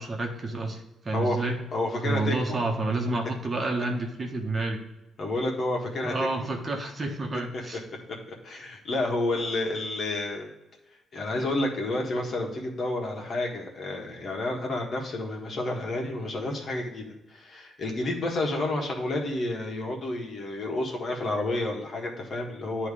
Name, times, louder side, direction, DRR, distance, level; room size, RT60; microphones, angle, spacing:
voice 1, 0.0-1.6 2.0-4.8 6.0-7.8, right 2 dB, 35° right, 2 dB, 1.3 m, -29 dB
voice 2, 1.1-1.4 1.7-2.6 3.0-3.1 5.2-6.1 8.4-10.5 11.1-22.9, left 2 dB, 50° left, 0 dB, 1.6 m, -30 dB
9.2 x 3.2 x 4.9 m, 0.99 s
cardioid pair, 90°, 0 cm